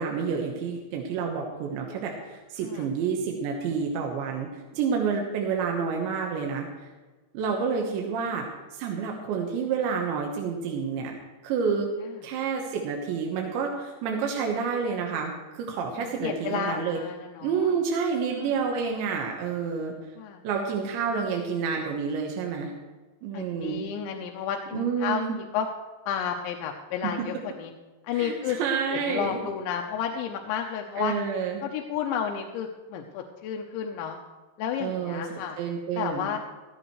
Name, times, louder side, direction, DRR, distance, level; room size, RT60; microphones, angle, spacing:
voice 1, 0.0-6.9 7.3-8.5 8.7-11.1 11.4-11.9 12.2-17.0 17.4-19.9 20.4-22.7 23.2-23.8 24.7-25.4 28.1-29.4 31.0-31.6 34.8-36.3, right 6 dB, 80° right, 1 dB, 3.6 m, -29 dB
voice 2, 16.0-17.7 18.3-18.5 20.2-20.4 21.1-21.2 23.3-25.7 26.1-27.7 28.0-28.6 28.9-31.1 31.6-34.2 34.6-35.6 35.9-36.4, left 8 dB, 85° left, 2 dB, 3.2 m, -32 dB
16.5 x 15.0 x 3.2 m, 1.3 s
omnidirectional pair, 5.2 m